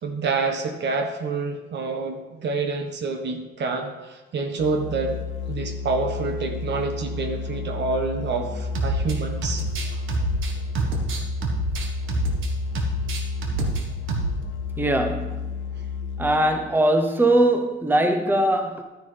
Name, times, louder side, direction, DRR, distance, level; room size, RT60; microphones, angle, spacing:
voice 1, 0.0-5.2 5.5-9.6, right 4 dB, 60° right, 5 dB, 1.4 m, -27 dB
Musical instrument, 4.6-16.6, left 4 dB, 70° left, 0.6 m, -31 dB
sound 1, 8.7-9.1 9.4-12.5 12.7-13.8 14.1-14.3, right 2 dB, 85° right, 1.4 m, -27 dB
voice 2, 14.8-15.4 16.2-18.8, right 1 dB, 10° right, 6 dB, 0.8 m, -21 dB
12.0 x 9.5 x 3.4 m, 1.1 s
cardioid pair, 90°, 20 cm